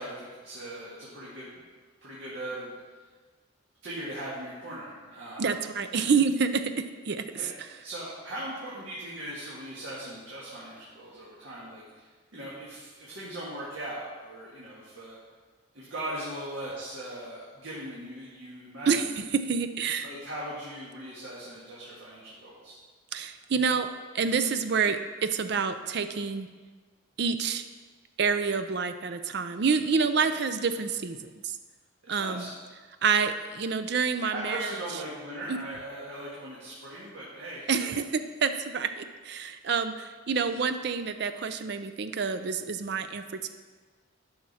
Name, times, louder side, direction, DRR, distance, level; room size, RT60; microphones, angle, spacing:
voice 1, 0.0-1.5 2.0-2.7 3.0-3.1 3.8-5.5 5.9-6.0 7.3-7.5 7.8-15.2 15.7-19.2 20.0-22.8 30.1-30.3 30.7-30.8 32.0-32.5 34.3-37.9, right 1 dB, 70° right, -7 dB, 1.8 m, -39 dB
voice 2, 5.4-6.6 7.1-7.2 18.9-19.0 19.3-20.1 23.1-23.9 24.1-26.5 27.2-27.6 28.2-31.6 32.1-32.5 33.0-34.7 37.7-43.5, right 5 dB, 55° right, 9 dB, 0.5 m, -28 dB
10.5 x 5.9 x 4.3 m, 1.4 s
head